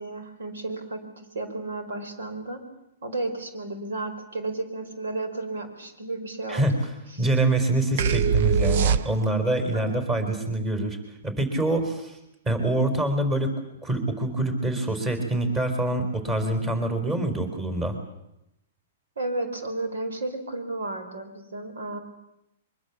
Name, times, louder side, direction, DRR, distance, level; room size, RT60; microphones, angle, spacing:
voice 1, 0.0-2.6 3.0-6.7 7.1-7.3 9.7-10.3 19.2-22.0, right 2 dB, 80° right, 7 dB, 4.8 m, -33 dB
voice 2, 7.2-11.0 11.2-12.2 12.4-13.5 13.8-18.0, right 2 dB, 20° right, 7 dB, 4.5 m, -25 dB
sound 1, 8.0-9.5, right 6 dB, 60° right, 0.8 m, -22 dB
23.5 x 23.0 x 7.3 m, 0.86 s
hypercardioid pair, 130°, 0 cm